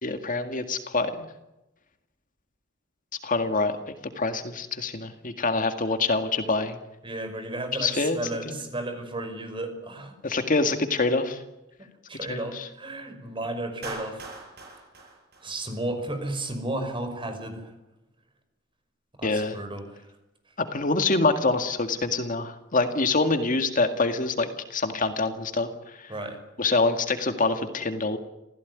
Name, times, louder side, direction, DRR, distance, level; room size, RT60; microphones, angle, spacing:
voice 1, 0.0-1.3 3.2-6.8 7.8-8.2 8.5-8.6 10.2-11.4 12.3-12.7 19.2-19.6 20.6-26.1 26.6-28.2, left 3 dB, 45° left, 8 dB, 2.0 m, -26 dB
voice 2, 7.0-10.2 11.8-14.3 15.4-17.7 19.2-20.0 26.1-26.4, right 2 dB, 25° right, 7 dB, 5.7 m, -33 dB
Clapping, 13.8-16.1, right 2 dB, 55° right, 7.6 m, -41 dB
27.0 x 16.5 x 9.6 m, 0.96 s
head